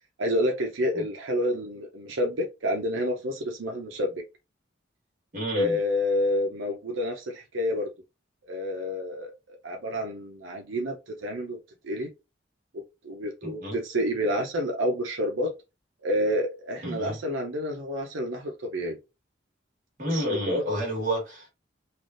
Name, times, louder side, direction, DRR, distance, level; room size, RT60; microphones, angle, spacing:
voice 1, 0.2-4.2 5.5-7.9 8.4-11.6 11.8-12.1 13.0-15.5 16.0-19.0 20.1-20.6, equal, 90° right, 0.7 m, -29 dB
voice 2, 5.3-5.8 13.4-13.8 16.8-17.2 20.0-21.5, right 1 dB, 45° right, 1.6 m, -31 dB
3.4 x 2.4 x 2.5 m
head